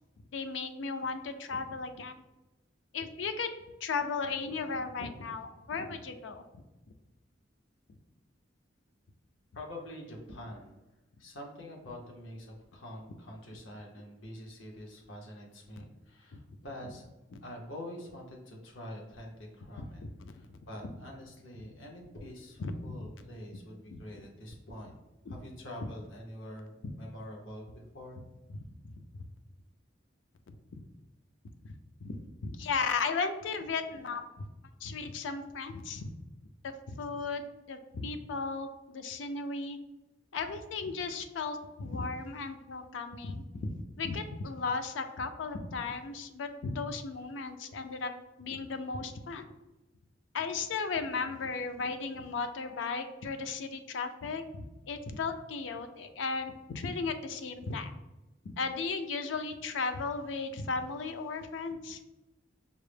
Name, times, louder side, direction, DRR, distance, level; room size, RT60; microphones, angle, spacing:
voice 1, 0.3-2.2 2.9-3.5 3.8-6.4 15.8-15.9 19.8-20.9 22.6-22.9 23.9-24.0 25.3-25.4 29.0-29.2 31.6-31.7 32.0-32.2 32.4-34.4 34.8-36.1 37.0-37.4 37.7-39.8 40.3-48.1 48.4-49.5 50.3-57.9 58.4-62.0, left 4 dB, 70° left, 8 dB, 0.4 m, -35 dB
voice 2, 9.5-10.8 11.2-17.1 17.4-24.9 25.3-28.2, left 1 dB, 85° left, 0 dB, 0.9 m, -46 dB
5.4 x 2.0 x 3.3 m, 1.0 s
head